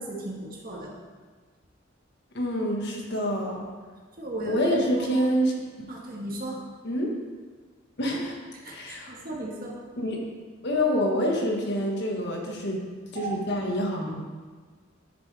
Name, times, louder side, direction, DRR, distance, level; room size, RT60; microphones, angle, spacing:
voice 1, 0.1-1.0 4.2-4.6 5.0-5.1 5.9-6.6 8.5-9.8 13.1-13.4, right 1 dB, 45° right, -2 dB, 1.6 m, -36 dB
voice 2, 2.3-3.6 4.4-5.5 5.8-5.9 6.8-7.1 8.0-8.4 8.6-9.2 10.0-10.2 10.6-12.8 13.1-14.2, equal, 60° left, 0 dB, 1.5 m, -27 dB
10.5 x 7.2 x 3.4 m, 1.5 s
head